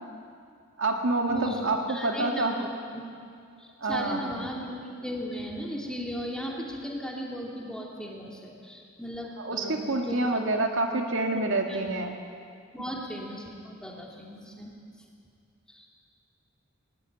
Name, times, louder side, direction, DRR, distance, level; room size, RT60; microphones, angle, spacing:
voice 1, 0.8-2.6 3.8-4.4 9.4-12.2, right 2 dB, 65° right, 3 dB, 2.0 m, -27 dB
voice 2, 1.3-1.6 1.9-3.1 3.6-10.4 11.7-11.8 12.7-14.7 15.7-15.9, equal, 5° left, -2 dB, 2.8 m, -37 dB
19.0 x 19.0 x 9.2 m, 2.4 s
head